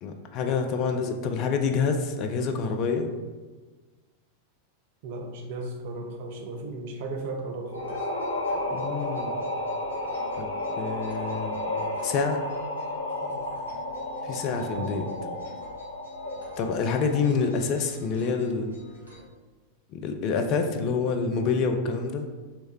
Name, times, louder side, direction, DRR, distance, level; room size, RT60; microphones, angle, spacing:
voice 1, 0.0-3.1 8.7-9.3 10.4-10.5 10.8-11.6 12.0-12.4 14.2-15.1 16.6-18.8 19.9-22.3, left 5 dB, 40° left, 5 dB, 0.5 m, -27 dB
voice 2, 5.0-7.9 14.6-15.2, right 2 dB, 50° right, 3 dB, 0.5 m, -35 dB
sound 1, 7.7-17.4, left 2 dB, 70° left, 0.8 m, -32 dB
sound 2, 7.7-19.2, equal, 80° right, 1.3 m, -50 dB
3.4 x 3.2 x 4.5 m, 1.3 s
figure-of-eight pair, 90°, 0 cm